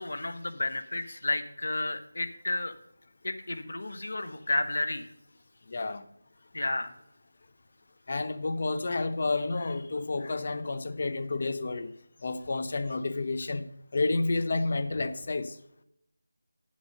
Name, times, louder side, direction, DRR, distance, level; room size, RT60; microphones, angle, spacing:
voice 1, 0.0-2.7 3.2-5.1 6.5-7.0, left 2 dB, 60° left, 1.0 m, -32 dB
voice 2, 5.7-6.0 8.1-11.9 12.2-13.7 13.9-15.6, left 3 dB, 45° left, 0.6 m, -30 dB
8.5 x 7.7 x 5.3 m
figure-of-eight pair, 165°, 0 cm